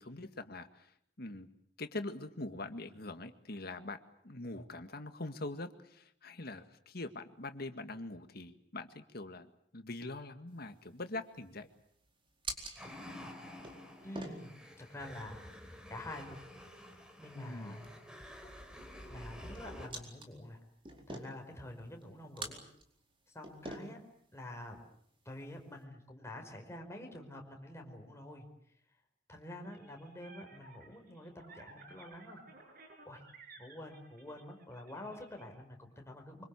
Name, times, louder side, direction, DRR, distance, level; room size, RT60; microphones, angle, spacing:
voice 1, 0.0-1.5 1.8-11.7 17.3-17.8, left 2 dB, 60° left, 8 dB, 2.0 m, -43 dB
sound 1, 10.5-25.8, right 2 dB, 30° right, 4.5 m, -50 dB
sound 2, 12.8-19.9, left 1 dB, 5° right, 4.2 m, -50 dB
voice 2, 14.0-15.4 15.9-16.4 17.2-17.9 18.4-18.5 19.1-20.6 21.1-22.6 23.3-24.0 24.3-24.8 25.2-28.5 29.3-32.4 33.0-33.2 33.6-36.4, left 1 dB, 15° left, 3 dB, 5.1 m, -47 dB
sound 3, 29.7-35.4, right 3 dB, 55° right, 7.4 m, -56 dB
25.5 x 24.5 x 8.4 m, 0.67 s
head